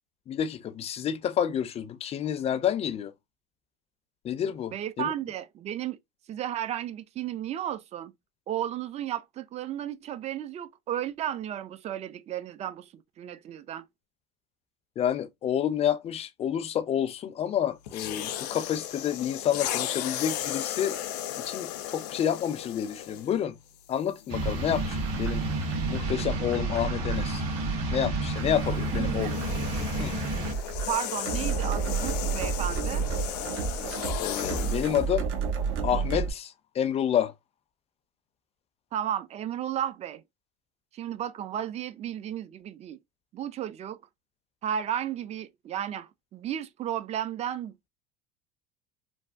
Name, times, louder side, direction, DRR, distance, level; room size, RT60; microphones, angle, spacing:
voice 1, 0.3-3.1 4.2-5.1 15.0-20.9 21.4-23.6 23.9-25.4 25.9-27.4 27.9-29.4 30.0-30.2 34.2-35.3 35.8-37.3, left 9 dB, 30° left, 0.4 m, -29 dB
voice 2, 4.7-6.0 6.3-8.1 8.5-13.8 28.9-29.4 30.3-30.5 30.9-33.0 38.9-40.2 40.9-43.0 43.3-44.0 44.6-47.8, right 10 dB, 35° right, 0.4 m, -33 dB
sound 1, 17.9-23.4 24.2-24.4 28.4-35.1, left 12 dB, 85° left, 0.5 m, -35 dB
sound 2, 24.3-30.5, right 2 dB, 50° right, 1.6 m, -31 dB
sound 3, 24.4-36.3, right 5 dB, 75° right, 1.0 m, -32 dB
3.3 x 2.1 x 2.5 m
supercardioid pair, 105°, 20 cm